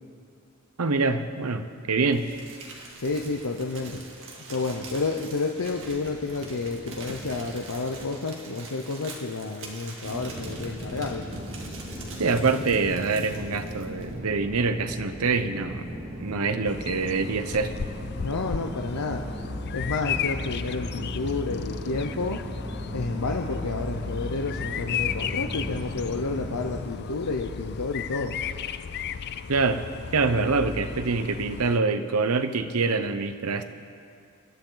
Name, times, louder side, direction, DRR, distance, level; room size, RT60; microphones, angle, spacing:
voice 1, 0.8-2.3 12.2-15.9 16.2-17.7 29.5-29.8 30.1-33.6, right 4 dB, 90° right, 9 dB, 0.8 m, -25 dB
Crumpling crinkling, 2.1-14.2, right 3 dB, 60° right, 2.3 m, -44 dB
voice 2, 3.0-4.0 4.5-11.4 18.2-19.3 19.7-22.4 22.9-28.4, left 3 dB, 85° left, 2 dB, 0.8 m, -30 dB
sound 1, 10.0-26.7, equal, 35° right, 4.2 m, -37 dB
Bird vocalization bird call bird song, 16.6-31.8, left 7 dB, 50° left, 0.4 m, -34 dB
25.5 x 11.5 x 3.9 m, 2.4 s
head